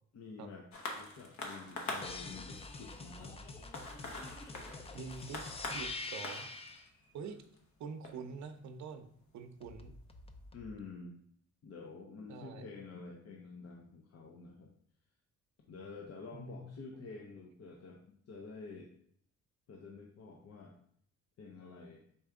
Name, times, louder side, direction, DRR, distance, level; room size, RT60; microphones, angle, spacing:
voice 1, 0.1-0.7 0.9-3.4 10.5-11.2 11.6-14.7 15.7-18.0 18.3-18.9 19.7-20.8 21.4-22.1, left 4 dB, 55° left, 0 dB, 0.8 m, -49 dB
sound 1, 0.7-9.6 10.3-10.4, left 2 dB, 70° left, 1.1 m, -46 dB
sound 2, 2.0-6.9 9.6-10.7, left 3 dB, 20° left, 0.5 m, -45 dB
voice 2, 4.9-6.5 7.1-7.4 7.8-9.1 9.3-9.9 12.3-12.7 16.3-17.0, right 5 dB, 70° right, 9 dB, 0.6 m, -46 dB
4.3 x 3.3 x 3.6 m, 0.66 s
cardioid pair, 90°, 30 cm